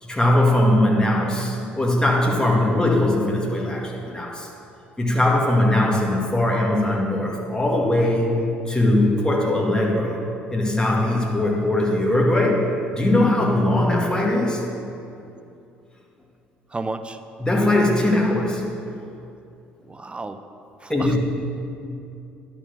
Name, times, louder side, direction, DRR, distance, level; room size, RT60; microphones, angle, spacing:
voice 1, 0.0-4.5 5.0-10.2 10.5-12.6 12.9-14.6 17.4-18.6 20.9-21.2, left 1 dB, 15° left, -2 dB, 2.0 m, -20 dB
voice 2, 16.7-17.2 19.8-20.4 20.8-21.2, right 3 dB, 20° right, 9 dB, 0.6 m, -32 dB
10.5 x 4.4 x 7.1 m, 2.6 s
hypercardioid pair, 55°, 5 cm